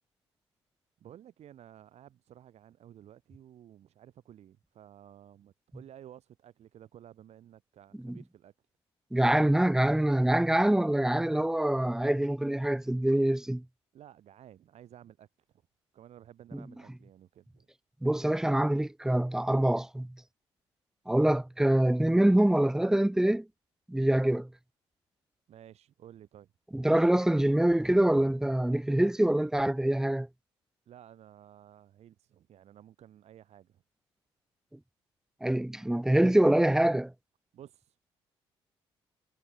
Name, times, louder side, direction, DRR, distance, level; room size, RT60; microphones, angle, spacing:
voice 1, 1.0-8.5 13.9-15.6 15.9-17.7 25.5-26.5 30.9-33.8 37.5-38.1, right 11 dB, 50° right, 2.0 m, -53 dB
voice 2, 9.1-13.6 18.0-20.1 21.1-23.5 23.9-24.5 26.7-30.3 35.4-37.1, right 1 dB, 5° right, 0.3 m, -25 dB
figure-of-eight pair, 45°, 14 cm